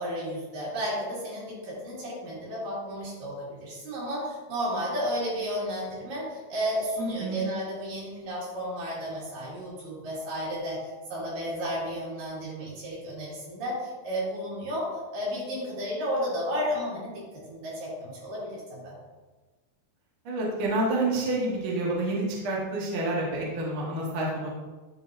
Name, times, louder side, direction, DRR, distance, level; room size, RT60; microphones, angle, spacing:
voice 1, 0.0-10.8 11.1-17.2 17.5-19.0, equal, 70° right, -7 dB, 3.9 m, -32 dB
voice 2, 7.0-7.4 20.2-24.5, right 2 dB, 50° right, -5 dB, 1.8 m, -28 dB
11.5 x 3.9 x 2.6 m, 1.3 s
omnidirectional pair, 4.1 m